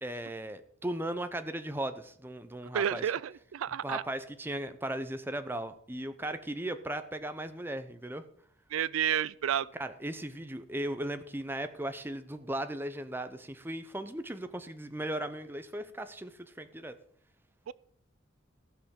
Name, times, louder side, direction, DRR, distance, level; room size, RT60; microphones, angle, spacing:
voice 1, 0.0-3.0 3.8-8.2 9.8-17.0, right 1 dB, 10° right, 0.7 m, -37 dB
voice 2, 2.7-4.0 8.7-9.7 17.7-17.8, right 9 dB, 85° right, 0.4 m, -30 dB
15.0 x 5.6 x 6.5 m
head